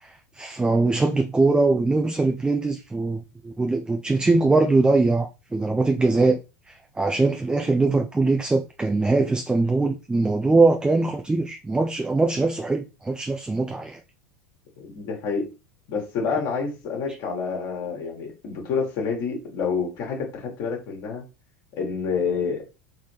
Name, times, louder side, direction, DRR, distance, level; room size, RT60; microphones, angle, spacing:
voice 1, 0.0-6.4 6.7-14.0, right 3 dB, 10° right, 0.5 m, -22 dB
voice 2, 14.8-15.5 15.9-21.2 21.7-22.7, left 5 dB, 45° left, 1.7 m, -28 dB
4.1 x 3.5 x 3.4 m
figure-of-eight pair, 80°, 8 cm